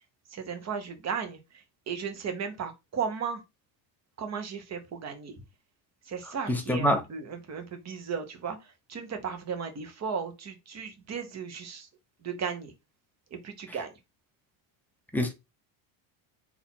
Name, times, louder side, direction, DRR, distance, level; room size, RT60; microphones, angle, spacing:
voice 1, 0.3-3.4 4.2-5.4 6.1-11.9 12.2-12.7 13.3-13.9, right 6 dB, 30° right, 1.2 m, -35 dB
voice 2, 6.5-7.0 15.1-15.3, equal, 5° left, 0.7 m, -25 dB
4.1 x 2.9 x 4.1 m
cardioid pair, 130°, 50 cm